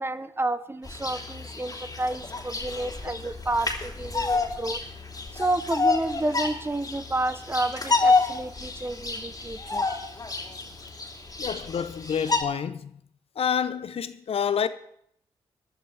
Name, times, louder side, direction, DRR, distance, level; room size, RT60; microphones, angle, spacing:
voice 1, 0.0-4.8 5.3-9.9, right 2 dB, 20° right, 0.9 m, -30 dB
Bird vocalization bird call bird song, 0.8-12.4, left 3 dB, 30° left, 3.3 m, -29 dB
voice 2, 11.4-12.9 13.4-14.7, left 7 dB, 55° left, 0.8 m, -28 dB
20.0 x 11.5 x 3.5 m
hypercardioid pair, 40°, 12 cm